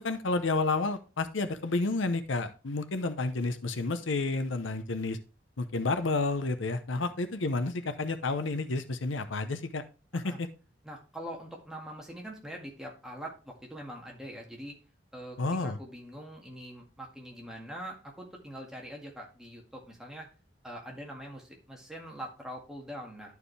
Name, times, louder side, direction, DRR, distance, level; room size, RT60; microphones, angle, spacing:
voice 1, 0.0-5.2 5.6-9.8 10.1-10.5 15.4-15.8, left 3 dB, 90° left, 11 dB, 0.8 m, -30 dB
voice 2, 10.8-14.8 15.1-20.3 20.6-23.4, equal, 5° right, -1 dB, 1.9 m, -43 dB
11.0 x 4.7 x 3.3 m, 0.33 s
head